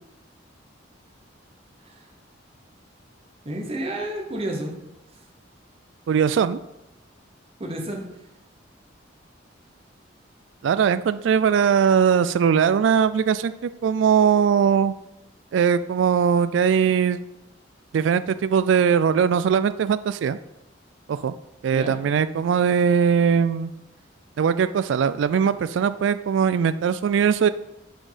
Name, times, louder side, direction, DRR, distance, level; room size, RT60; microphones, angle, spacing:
voice 1, 3.4-4.7 7.6-8.1 21.7-21.9, right 1 dB, 30° right, 1 dB, 1.0 m, -30 dB
voice 2, 6.1-6.6 10.6-14.9 15.5-17.2 17.9-20.4 21.1-21.3 21.6-23.7 24.4-27.5, right 7 dB, 75° right, 14 dB, 0.3 m, -20 dB
6.1 x 4.4 x 5.0 m, 0.94 s
head